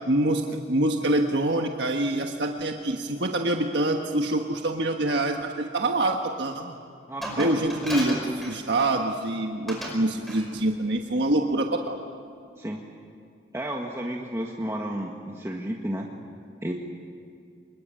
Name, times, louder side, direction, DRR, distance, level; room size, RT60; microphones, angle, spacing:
voice 1, 0.1-6.8 7.4-12.0, right 1 dB, 65° right, 3 dB, 1.4 m, -25 dB
voice 2, 7.1-7.6 12.6-12.8 13.5-16.1 16.6-16.7, right 1 dB, 15° right, -1 dB, 1.6 m, -32 dB
Glass, 7.2-9.0 9.7-10.0 10.3-10.5, equal, ahead, 5.3 m, -34 dB
26.5 x 21.5 x 9.0 m, 2.4 s
head